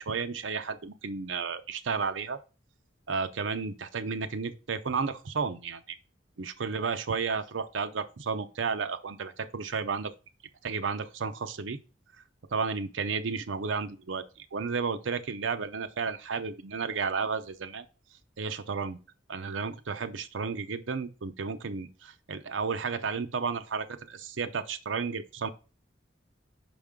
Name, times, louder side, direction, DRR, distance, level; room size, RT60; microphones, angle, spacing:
voice 1, 0.0-2.4 3.1-6.0 6.4-10.1 10.6-11.8 12.5-14.3 14.5-17.8 18.4-19.0 19.3-25.5, right 5 dB, 85° right, 0.6 m, -32 dB
5.4 x 5.2 x 3.6 m
head